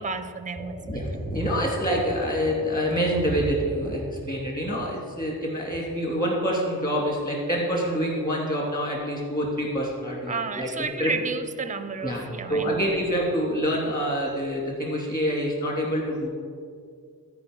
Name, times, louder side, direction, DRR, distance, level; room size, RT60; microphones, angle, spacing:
voice 1, 0.0-1.0 10.3-13.0, right 4 dB, 20° right, 12 dB, 0.5 m, -32 dB
voice 2, 0.6-10.7 11.0-11.1 12.0-12.2 12.5-16.3, equal, 25° left, -2 dB, 2.6 m, -26 dB
13.5 x 4.7 x 5.3 m, 2.2 s
wide cardioid pair, 110°, 36 cm